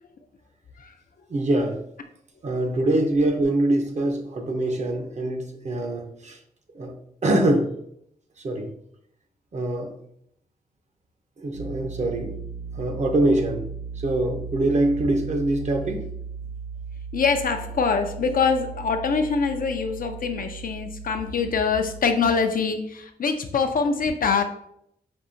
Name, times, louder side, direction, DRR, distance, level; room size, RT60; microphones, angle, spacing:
voice 1, 1.3-1.8 2.4-6.4 6.7-6.9 7.2-7.7 8.4-8.7 9.5-10.0 11.4-12.3 12.7-13.7 14.0-16.1, right 1 dB, 45° right, 3 dB, 0.7 m, -24 dB
sound 1, 11.5-22.0, right 5 dB, 90° right, 1.6 m, -37 dB
voice 2, 17.1-24.4, left 5 dB, 60° left, 6 dB, 0.5 m, -24 dB
5.3 x 2.7 x 2.6 m, 0.72 s
wide cardioid pair, 120°, 16 cm